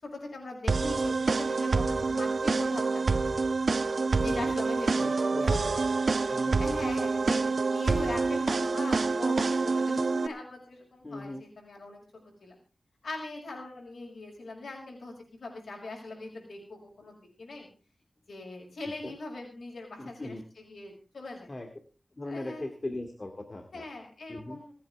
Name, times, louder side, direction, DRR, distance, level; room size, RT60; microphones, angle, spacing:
voice 1, 0.0-3.2 4.2-5.8 6.6-12.6 13.0-15.1 15.4-17.7 18.3-21.5 22.3-22.7 23.7-24.7, left 2 dB, 85° left, 0 dB, 6.0 m, -41 dB
sound 1, 0.7-10.3, right 4 dB, 70° right, 1.1 m, -27 dB
voice 2, 4.2-4.5 5.0-5.7 6.3-6.6 11.0-11.4 19.0-19.1 20.0-20.4 21.5-21.7 22.1-23.8 24.3-24.6, left 2 dB, 35° left, 5 dB, 2.2 m, -38 dB
27.5 x 9.4 x 3.5 m, 0.34 s
wide cardioid pair, 95°, 0 cm